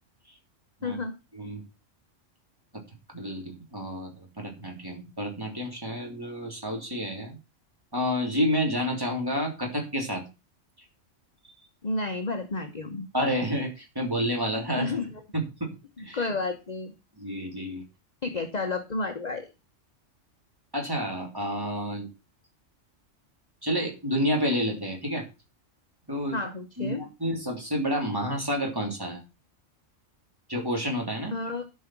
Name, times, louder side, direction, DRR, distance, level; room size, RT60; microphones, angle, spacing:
voice 1, 0.8-1.1 11.8-13.1 14.8-15.2 16.0-16.9 18.2-19.5 26.3-27.0 31.3-31.6, left 3 dB, 35° left, 5 dB, 1.0 m, -31 dB
voice 2, 3.1-7.4 7.9-10.2 13.1-15.0 15.3-15.7 16.0-16.2 17.2-17.8 20.7-22.1 23.6-25.2 26.1-26.4 26.8-29.2 30.5-31.4, equal, 15° right, 1 dB, 3.1 m, -29 dB
11.5 x 5.6 x 5.9 m, 0.29 s
omnidirectional pair, 1.3 m